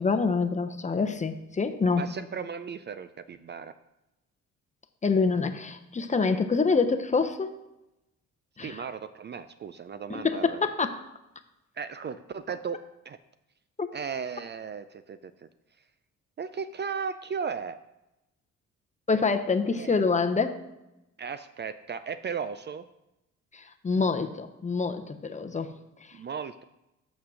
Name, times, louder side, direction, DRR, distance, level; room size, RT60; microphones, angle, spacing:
voice 1, 0.0-2.1 5.0-7.6 8.6-8.8 10.1-11.0 13.8-13.9 19.1-20.6 23.5-25.7 26.0-26.2, left 4 dB, 25° left, 8 dB, 0.7 m, -26 dB
voice 2, 1.9-3.7 8.6-10.6 11.8-12.8 13.1-13.2 13.9-15.2 16.4-17.8 19.8-20.0 21.2-22.8 26.1-26.6, right 6 dB, 35° right, 12 dB, 0.4 m, -36 dB
6.3 x 5.8 x 6.2 m, 0.93 s
cardioid pair, 90°, 30 cm